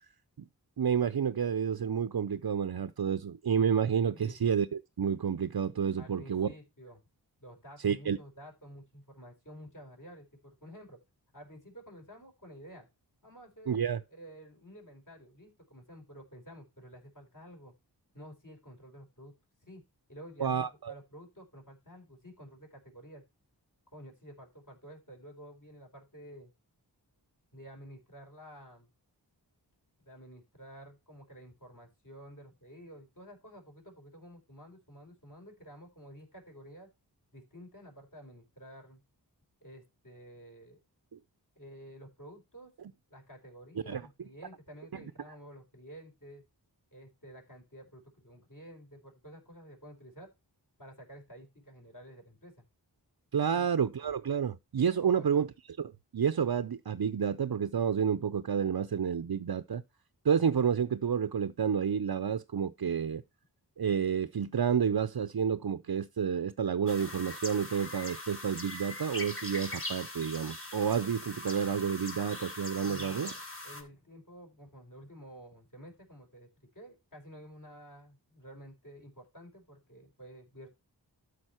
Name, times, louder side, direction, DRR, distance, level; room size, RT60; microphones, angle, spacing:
voice 1, 0.8-6.5 7.8-8.2 13.7-14.0 20.4-20.9 43.9-44.0 53.3-55.5 55.8-59.8 60.2-63.2 63.8-73.3, right 7 dB, 60° right, 0.6 m, -30 dB
voice 2, 6.0-7.0 7.4-11.0 11.3-12.9 13.2-17.7 18.1-19.4 19.6-19.8 20.1-23.2 23.9-26.5 27.5-28.9 30.1-36.9 37.3-39.0 39.6-40.8 41.6-42.7 43.1-46.4 46.9-50.3 50.8-52.5 55.0-55.4 72.8-80.7, equal, 45° left, 4.5 m, -51 dB
sound 1, 66.9-73.8, left 2 dB, 30° left, 3.9 m, -41 dB
12.5 x 5.1 x 4.4 m
wide cardioid pair, 55°, 42 cm